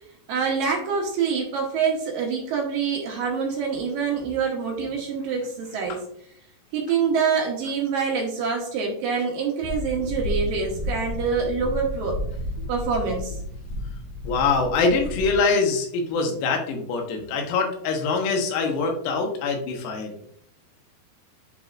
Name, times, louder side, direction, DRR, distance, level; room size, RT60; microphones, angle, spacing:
voice 1, 0.3-6.0 6.7-12.2 12.7-13.4, right 5 dB, 70° right, 0 dB, 2.4 m, -26 dB
sound 1, 9.6-15.3, left 1 dB, 65° left, 2.3 m, -32 dB
voice 2, 14.2-20.1, left 4 dB, 85° left, 2 dB, 3.2 m, -24 dB
10.5 x 4.1 x 2.5 m, 0.66 s
omnidirectional pair, 4.7 m